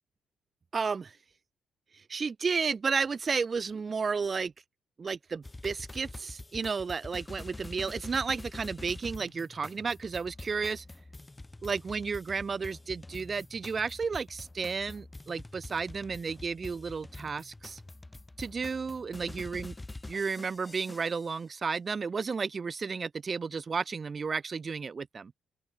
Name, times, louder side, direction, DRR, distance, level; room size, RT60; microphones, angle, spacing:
voice 1, 0.7-1.2 1.9-4.5 5.0-10.8 11.6-17.8 18.4-19.7 20.1-25.3, right 5 dB, 35° right, 2.0 m, -32 dB
sound 1, 5.4-21.3, left 2 dB, 15° left, 2.0 m, -46 dB
open air
cardioid pair, 90°, 0 cm